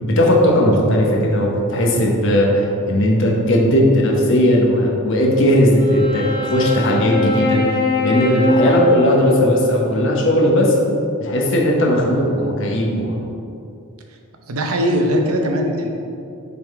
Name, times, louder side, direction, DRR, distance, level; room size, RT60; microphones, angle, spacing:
voice 1, 0.0-7.6 8.0-10.8 11.2-13.2, equal, 55° left, -1 dB, 1.0 m, -16 dB
Wind instrument woodwind instrument, 5.7-10.3, left 2 dB, 20° left, 0.9 m, -22 dB
voice 2, 14.5-15.9, equal, 75° right, 3 dB, 0.7 m, -20 dB
5.9 x 3.8 x 4.7 m, 2.6 s
head